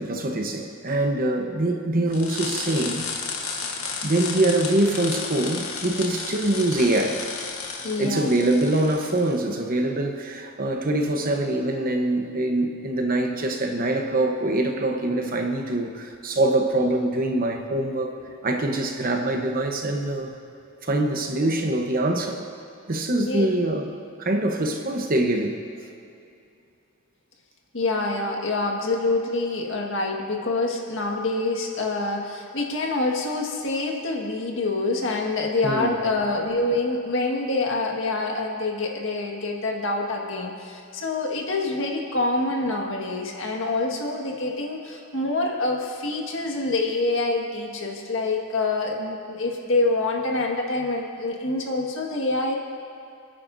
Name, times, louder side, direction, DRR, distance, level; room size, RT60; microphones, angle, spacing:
voice 1, 0.0-3.1 4.0-7.3 8.0-18.1 18.4-20.3 20.8-22.5 22.9-23.9 24.2-25.5 35.6-36.0, right 1 dB, 45° right, 4 dB, 1.0 m, -24 dB
sound 1, 2.1-9.3, left 5 dB, 85° left, 1.7 m, -33 dB
voice 2, 7.8-8.3 23.2-23.5 27.7-52.6, left 2 dB, 65° left, 0 dB, 1.8 m, -26 dB
29.5 x 9.9 x 2.7 m, 2.5 s
head